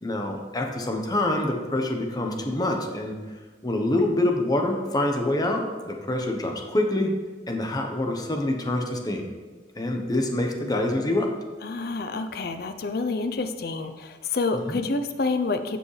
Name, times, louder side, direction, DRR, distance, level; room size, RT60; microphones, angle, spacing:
voice 1, 0.0-3.2 3.6-7.1 7.5-9.3 9.8-11.3 14.5-14.8, left 1 dB, 20° left, 2 dB, 1.0 m, -26 dB
voice 2, 11.6-15.8, left 3 dB, 60° left, 8 dB, 0.6 m, -28 dB
15.0 x 5.1 x 3.3 m, 1.3 s
head